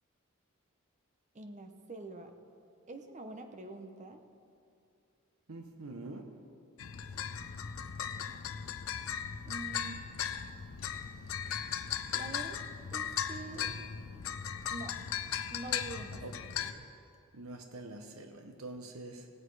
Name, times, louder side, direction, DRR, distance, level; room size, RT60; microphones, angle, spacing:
voice 1, 1.3-2.3 2.9-4.2 9.5-10.0 12.1-12.6 12.9-13.7 14.7-15.0 15.5-16.2, right 2 dB, 35° right, 6 dB, 0.9 m, -45 dB
voice 2, 5.5-6.4 16.2-16.9 17.3-19.3, right 2 dB, 75° right, 5 dB, 0.9 m, -46 dB
sound 1, 6.8-16.7, left 8 dB, 70° left, 0.5 m, -37 dB
18.0 x 8.1 x 4.8 m, 2.5 s
head